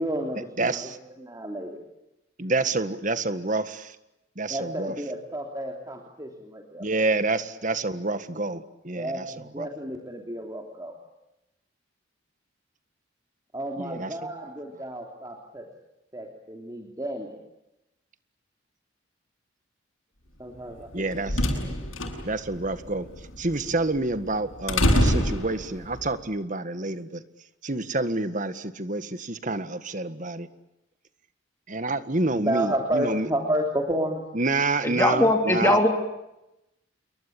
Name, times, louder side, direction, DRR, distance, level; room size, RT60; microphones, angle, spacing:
voice 1, 0.0-1.8 4.5-6.9 9.0-10.9 13.5-15.7 16.1-17.3 20.4-21.2 21.6-21.7 32.3-34.2, right 1 dB, 20° right, 1 dB, 3.1 m, -31 dB
voice 2, 0.6-1.0 2.4-3.9 4.4-4.9 6.8-9.2 9.6-9.7 13.8-14.1 20.9-21.4 22.2-23.1 23.4-27.2 27.6-30.5 31.7-33.3 34.4-35.8, right 2 dB, 40° right, 12 dB, 1.7 m, -28 dB
sound 1, 20.8-26.0, left 1 dB, 80° left, 7.5 m, -26 dB
voice 3, 34.8-35.9, left 1 dB, 10° left, 3 dB, 3.4 m, -20 dB
28.5 x 23.0 x 8.7 m, 0.90 s
head